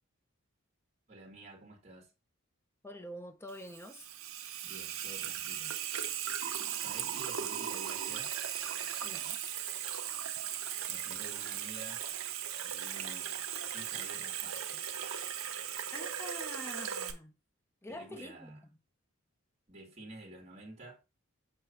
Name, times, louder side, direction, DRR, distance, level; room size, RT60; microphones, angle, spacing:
voice 1, 1.1-2.1 4.6-5.7 6.8-8.3 10.9-12.0 12.6-14.8 17.9-18.6 19.7-21.0, right 2 dB, 35° right, 1.8 m, -50 dB
voice 2, 2.8-4.1 9.0-9.4 15.9-17.4 17.8-18.8, left 1 dB, 10° left, 0.8 m, -46 dB
Water tap faucet / Sink (filling or washing), 3.5-17.1, right 9 dB, 70° right, 0.9 m, -38 dB
6.5 x 3.0 x 5.8 m
head